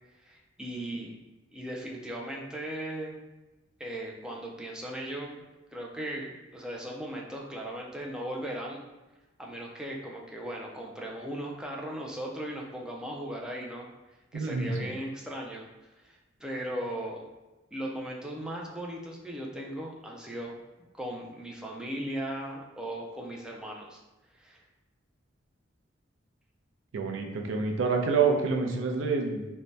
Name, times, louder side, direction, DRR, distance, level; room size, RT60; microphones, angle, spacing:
voice 1, 0.2-1.2 1.5-3.2 3.8-5.4 5.7-8.8 9.4-13.9 14.3-15.7 16.0-17.2 17.7-20.6 20.9-24.0 24.3-24.6, right 1 dB, 5° right, -2 dB, 0.3 m, -37 dB
voice 2, 14.3-14.9 26.9-29.5, right 4 dB, 85° right, 2 dB, 0.4 m, -27 dB
2.6 x 2.1 x 3.2 m, 1.1 s
head